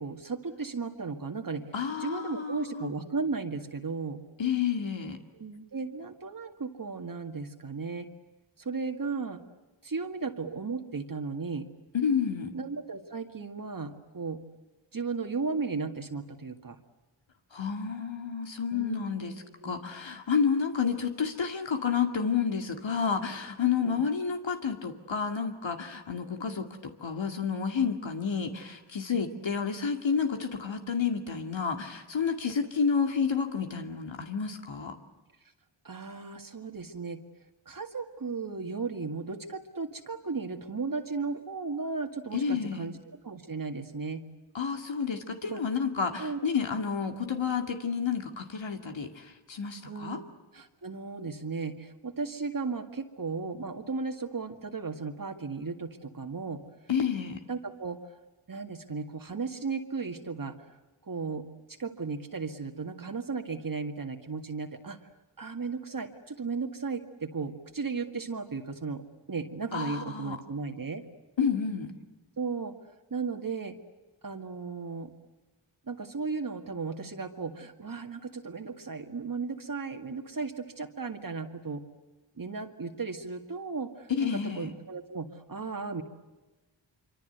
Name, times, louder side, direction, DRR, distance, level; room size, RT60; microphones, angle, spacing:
voice 1, 0.0-1.6 2.0-4.2 5.4-8.1 8.6-9.4 9.8-11.7 12.5-14.4 14.9-16.8 18.7-19.8 23.8-23.9 35.8-37.2 37.7-43.0 43.2-44.2 45.5-45.6 46.2-46.5 49.9-50.2 50.5-56.6 57.5-58.1 58.5-60.6 61.0-61.4 61.8-65.0 65.4-69.0 69.3-71.0 72.4-72.7 73.1-73.8 74.2-75.1 75.9-81.8 82.4-86.0, right 4 dB, 45° right, 4 dB, 2.0 m, -35 dB
voice 2, 1.7-2.9 4.4-5.2 11.9-12.5 17.5-19.3 19.6-35.0 42.3-42.9 44.5-50.2 56.9-57.4 69.7-70.4 71.4-71.9 84.1-84.7, left 6 dB, 70° left, 5 dB, 2.4 m, -30 dB
26.5 x 25.0 x 8.1 m, 1.2 s
wide cardioid pair, 100°, 47 cm